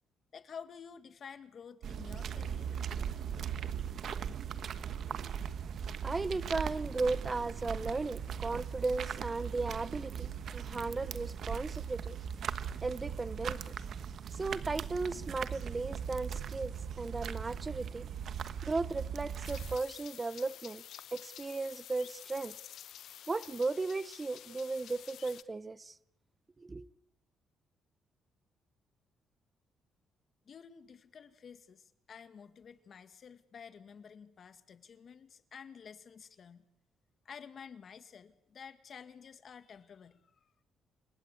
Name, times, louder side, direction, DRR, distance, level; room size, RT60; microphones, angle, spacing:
voice 1, 0.3-2.8 30.4-36.7 37.2-40.6, left 6 dB, 50° left, 1.8 m, -51 dB
sound 1, 1.8-19.8, right 7 dB, 60° right, 1.3 m, -39 dB
voice 2, 6.0-12.2 12.8-13.7 14.3-18.1 18.6-20.8 21.1-22.6 23.3-25.9 26.6-26.9, right 3 dB, 25° right, 0.9 m, -36 dB
foret.fin.de.journee, 19.4-25.4, left 11 dB, 75° left, 0.9 m, -50 dB
28.5 x 16.5 x 8.5 m
cardioid pair, 90°, 0 cm